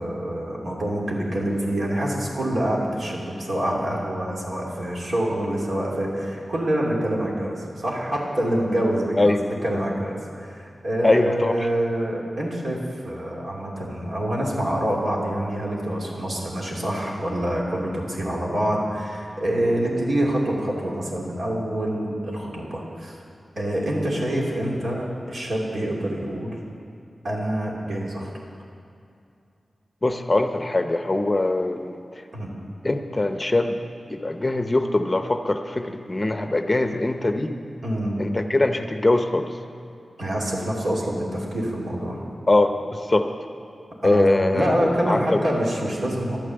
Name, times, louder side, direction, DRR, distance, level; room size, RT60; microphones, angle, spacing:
voice 1, 0.0-9.4 9.6-23.2 23.5-26.6 27.2-28.3 32.3-32.5 37.8-38.1 40.2-42.2 44.0-44.3 44.5-46.4, right 1 dB, 65° right, -3 dB, 2.8 m, -26 dB
voice 2, 11.0-11.5 30.0-32.2 32.8-33.8 34.1-37.5 38.2-39.5 42.5-43.3 44.0-45.4, left 2 dB, 25° left, 7 dB, 0.7 m, -22 dB
12.0 x 9.0 x 7.8 m, 2.6 s
wide cardioid pair, 85°, 0 cm